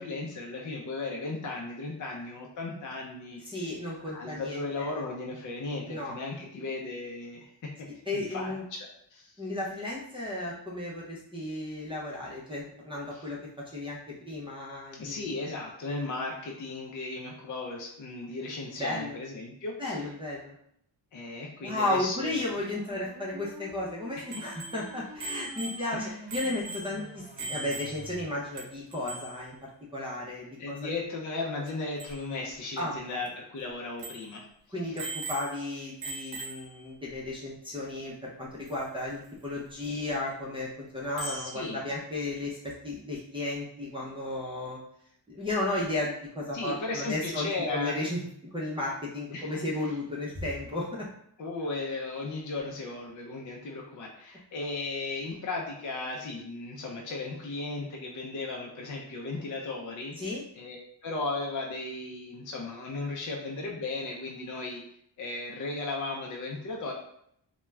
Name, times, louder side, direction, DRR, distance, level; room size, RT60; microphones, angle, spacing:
voice 1, 0.0-3.4 4.1-7.5 7.8-7.9 8.1-8.8 9.1-9.3 13.1-13.3 15.0-20.1 21.1-22.4 24.1-24.4 25.9-26.1 30.6-34.4 41.2-41.8 46.5-48.0 49.3-49.9 51.4-60.2 60.6-60.8 61.0-64.8 65.2-66.9, left 3 dB, 45° left, -1 dB, 0.5 m, -36 dB
voice 2, 3.4-4.9 5.9-6.2 8.1-8.6 9.4-13.4 13.7-15.3 18.8-19.2 19.8-20.6 21.6-26.0 26.3-30.8 32.8-33.2 34.7-44.8 45.3-48.3 48.5-51.1 60.2-60.4, left 2 dB, 10° right, -7 dB, 0.5 m, -34 dB
sound 1, 22.3-28.2, right 2 dB, 40° right, 1.0 m, -47 dB
Bicycle bell, 24.3-28.3 28.6-28.7 28.9-29.4 31.7-31.8 32.0-32.2 32.8-32.9 33.3-33.4 34.0-34.4 35.0-35.7 36.0-36.8 38.7-38.8 41.2-41.6, right 2 dB, 75° right, 0.7 m, -39 dB
2.3 x 2.2 x 3.1 m, 0.71 s
wide cardioid pair, 100°, 44 cm